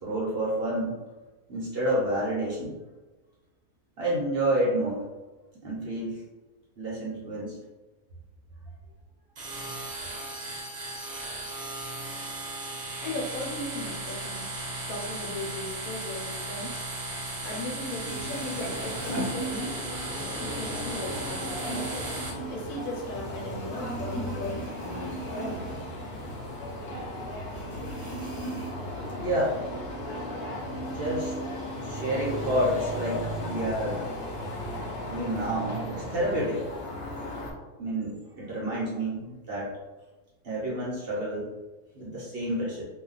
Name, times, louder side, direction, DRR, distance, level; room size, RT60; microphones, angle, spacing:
voice 1, 0.0-1.0 1.5-2.8 4.0-5.1 5.6-6.2 6.8-7.6 19.4-19.5 29.2-29.6 30.9-31.5 31.9-34.1 35.1-36.6 37.8-39.7 40.4-41.4 41.9-42.8, right 1 dB, 50° right, -6 dB, 0.9 m, -29 dB
sound 1, 9.3-22.3, right 2 dB, 75° right, 0.3 m, -36 dB
voice 2, 13.0-14.5 14.9-16.8 17.4-19.1 19.4-19.8 20.4-25.2 29.6-29.7, left 1 dB, 75° left, -1 dB, 1.2 m, -37 dB
sound 2, 17.9-20.1 20.4-23.4 23.7-26.7 26.9-27.0 27.5-29.0 29.4-30.1, right 1 dB, 30° left, 1.3 m, -38 dB
sound 3, 18.5-37.5, equal, 55° left, 0.8 m, -36 dB
2.7 x 2.3 x 3.8 m, 1.2 s
omnidirectional pair, 1.6 m